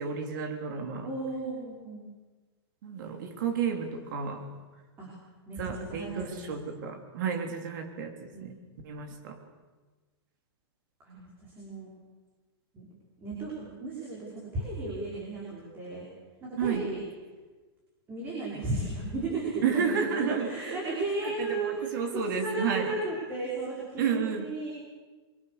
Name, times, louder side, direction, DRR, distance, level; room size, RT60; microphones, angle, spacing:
voice 1, 0.0-1.1 2.8-4.5 5.6-8.5 8.8-9.4 16.6-16.9 19.6-22.9 24.0-24.5, right 6 dB, 45° right, 4 dB, 3.5 m, -32 dB
voice 2, 1.0-2.0 5.0-5.1 5.5-6.8 8.3-8.5 11.0-11.9 12.7-12.8 13.2-16.0 16.4-17.0 18.1-22.0 22.3-24.7, right 2 dB, 15° right, -5 dB, 5.5 m, -35 dB
29.0 x 23.5 x 6.9 m, 1.3 s
supercardioid pair, 175°, 14 cm